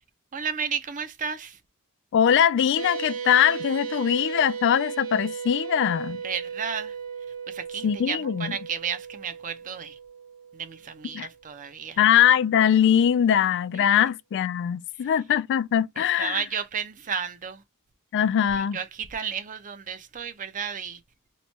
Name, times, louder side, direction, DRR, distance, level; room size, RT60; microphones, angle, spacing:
voice 1, 0.3-1.6 6.2-6.9 7.5-10.0 10.5-12.0 13.7-14.1 15.0-15.1 16.0-17.6 18.5-21.0, right 7 dB, 35° right, 0.5 m, -33 dB
voice 2, 2.1-6.2 7.8-8.5 11.1-11.3 12.0-16.4 18.1-18.8, left 9 dB, 55° left, 0.3 m, -22 dB
sound 1, 2.8-11.4, right 7 dB, 75° right, 0.7 m, -36 dB
3.0 x 2.2 x 4.0 m
head